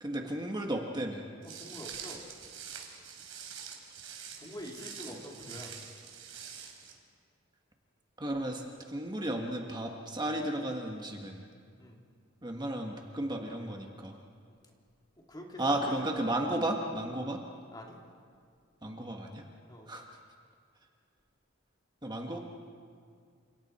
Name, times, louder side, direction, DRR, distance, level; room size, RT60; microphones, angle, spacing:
voice 1, 0.0-1.2 5.5-5.6 8.2-11.5 12.4-14.2 15.6-17.4 18.8-19.5 19.9-20.1 22.0-22.4, right 1 dB, 20° right, 1 dB, 1.6 m, -34 dB
Walk footsteps, 1.4-6.9, right 7 dB, 90° right, 3.5 m, -45 dB
voice 2, 1.6-2.2 4.4-5.7 8.3-8.4 11.8-12.0 15.3-15.7 17.7-18.0 19.7-19.9, left 1 dB, 20° left, 0 dB, 2.6 m, -46 dB
29.5 x 27.0 x 4.4 m, 2.1 s
head